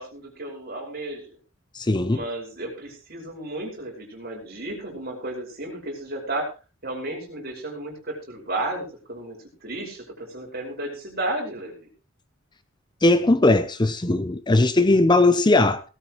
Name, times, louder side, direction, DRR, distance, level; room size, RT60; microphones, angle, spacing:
voice 1, 0.0-1.4 2.1-6.5 6.8-11.9, right 2 dB, 50° right, 5.4 m, -33 dB
voice 2, 1.7-2.2 13.0-15.8, left 2 dB, 20° left, 0.7 m, -19 dB
17.5 x 13.5 x 3.1 m
head